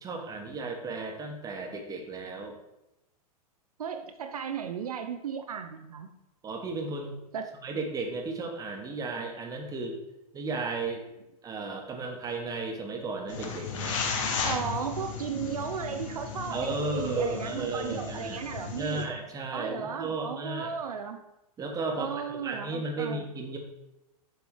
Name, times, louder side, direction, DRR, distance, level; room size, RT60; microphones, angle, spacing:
voice 1, 0.0-2.6 6.4-7.1 7.6-10.0 10.3-11.0 11.4-14.0 16.5-18.4 18.8-20.7 21.6-23.6, right 3 dB, 20° right, 2 dB, 1.1 m, -34 dB
voice 2, 3.8-6.1 7.3-7.5 14.4-19.1 19.5-21.2 22.0-23.3, right 7 dB, 70° right, 7 dB, 0.5 m, -35 dB
sound 1, 13.3-19.0, left 5 dB, 55° left, 1.0 m, -35 dB
7.1 x 3.7 x 4.7 m, 0.91 s
figure-of-eight pair, 95°, 20 cm